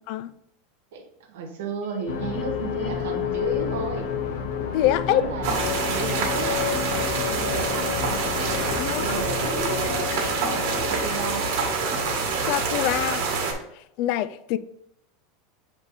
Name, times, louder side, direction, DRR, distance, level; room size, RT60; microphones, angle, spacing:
voice 1, 0.9-4.1 5.1-7.9 8.8-11.5, right 5 dB, 80° right, 1.4 m, -33 dB
sound 1, 1.8-12.1, left 15 dB, 25° left, 0.8 m, -33 dB
sound 2, 2.1-10.0, left 5 dB, 65° left, 0.8 m, -32 dB
voice 2, 4.7-5.3 8.7-9.0 12.5-13.2 14.0-14.6, left 13 dB, 50° left, 0.3 m, -24 dB
sound 3, 5.4-13.5, right 4 dB, 55° right, 1.9 m, -26 dB
7.1 x 3.7 x 4.1 m
supercardioid pair, 160°, 0 cm